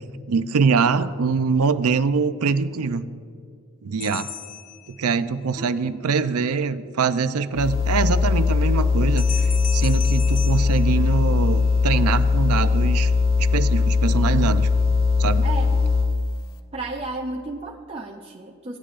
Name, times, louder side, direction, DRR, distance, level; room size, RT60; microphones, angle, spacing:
voice 1, 0.3-3.0 3.8-4.3 4.9-13.1 13.5-14.7 15.2-15.4, right 5 dB, 85° right, 12 dB, 0.5 m, -23 dB
sound 1, 4.0-5.5 9.2-11.7, left 8 dB, 35° left, 0.5 m, -36 dB
voice 2, 5.6-6.0 15.4-15.9 16.7-18.8, right 3 dB, 25° right, -1 dB, 0.5 m, -33 dB
sound 2, 7.5-16.2, left 4 dB, 65° left, 0.9 m, -20 dB
17.0 x 10.0 x 2.5 m, 2.3 s
head